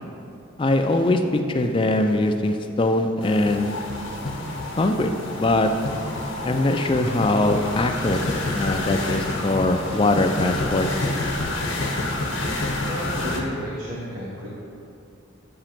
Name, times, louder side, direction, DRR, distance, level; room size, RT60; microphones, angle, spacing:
voice 1, 0.6-3.8 4.8-5.7 6.4-8.2 8.5-10.9, left 2 dB, 25° left, 5 dB, 0.3 m, -22 dB
sound 1, 3.2-13.4, left 2 dB, 65° left, 1.0 m, -28 dB
voice 2, 12.8-14.5, equal, 65° right, -6 dB, 0.9 m, -32 dB
8.6 x 3.0 x 5.8 m, 2.6 s
head